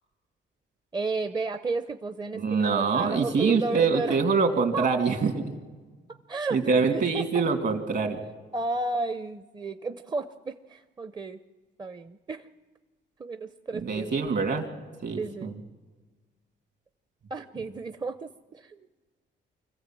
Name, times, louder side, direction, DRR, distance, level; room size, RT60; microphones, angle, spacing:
voice 1, 0.9-4.2 4.7-4.9 6.1-7.4 8.5-11.4 11.8-12.5 13.2-14.1 15.2-15.5 17.3-18.9, right 3 dB, 20° right, 10 dB, 0.6 m, -33 dB
voice 2, 2.3-5.6 6.5-8.2 13.8-14.7 15.0-15.5, right 4 dB, 60° right, 5 dB, 2.8 m, -25 dB
25.0 x 15.0 x 7.6 m, 1.3 s
cardioid pair, 90°, 20 cm